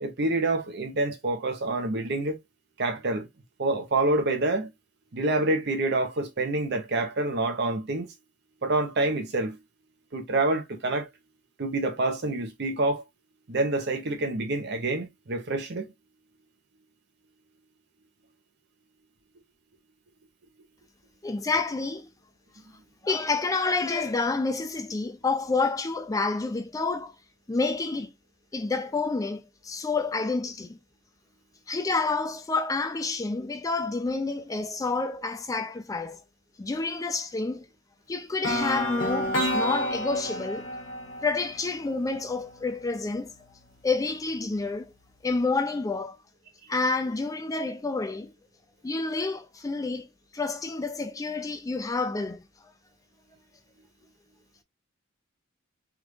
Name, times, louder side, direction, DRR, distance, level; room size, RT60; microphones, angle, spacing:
voice 1, 0.0-2.4 2.8-3.3 3.6-4.7 5.1-8.1 8.6-9.6 10.1-11.1 11.6-13.0 13.5-15.9, right 2 dB, 60° right, 0.8 m, -27 dB
voice 2, 21.2-22.1 23.0-27.1 27.5-28.1 28.5-30.8 31.7-36.2 36.6-37.7 38.1-40.7 41.2-43.3 43.8-44.9 45.2-46.2 46.7-48.3 48.8-50.1 50.3-52.4, left 3 dB, 20° left, 0.4 m, -29 dB
sound 1, 38.4-42.4, left 1 dB, 75° left, 1.4 m, -30 dB
3.5 x 2.4 x 3.1 m
head